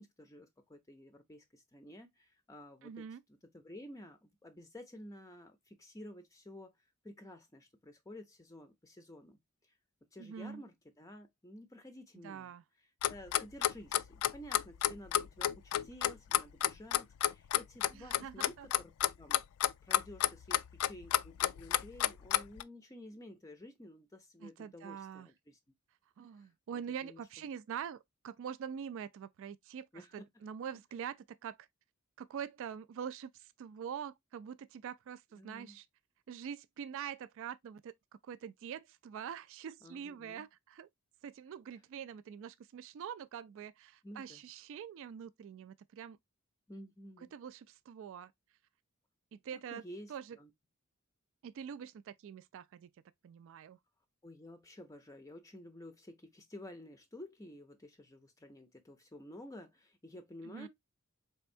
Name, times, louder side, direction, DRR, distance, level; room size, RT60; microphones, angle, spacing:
voice 1, 0.0-3.1 3.5-9.8 10.1-12.5 13.1-19.4 19.8-25.6 26.3-27.4 29.9-30.2 35.4-35.8 39.8-40.4 44.0-44.4 46.7-47.3 49.7-50.5 54.2-60.7, left 1 dB, 15° left, 0.5 m, -52 dB
voice 2, 2.8-3.2 10.2-10.6 12.2-12.6 17.9-18.7 24.4-25.3 26.2-31.7 32.2-35.9 36.3-37.9 38.2-40.9 41.2-46.2 47.2-48.3 49.3-49.8 50.1-50.4 51.4-52.9 53.2-53.8 60.4-60.7, right 8 dB, 65° right, 0.3 m, -45 dB
Clock, 13.0-22.6, left 12 dB, 90° left, 0.3 m, -30 dB
4.3 x 3.4 x 2.5 m
head